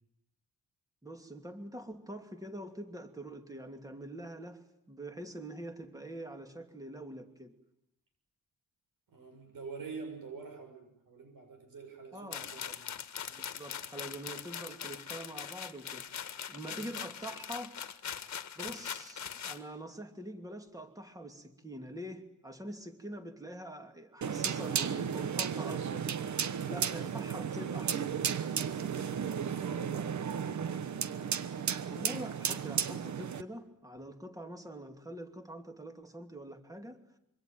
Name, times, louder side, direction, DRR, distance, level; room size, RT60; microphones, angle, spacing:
voice 1, 1.0-4.6 4.9-7.5 12.1-12.8 13.3-16.0 16.5-17.7 18.6-26.0 26.7-28.0 31.9-37.0, right 1 dB, 10° right, 6 dB, 2.7 m, -44 dB
voice 2, 9.1-13.0 29.4-31.2, right 4 dB, 70° right, 6 dB, 6.6 m, -47 dB
sound 1, 12.3-19.6, left 8 dB, 55° left, 1.7 m, -41 dB
sound 2, 24.2-33.4, right 7 dB, 55° right, 1.2 m, -34 dB
26.0 x 24.5 x 9.4 m, 0.79 s
wide cardioid pair, 150°, 34 cm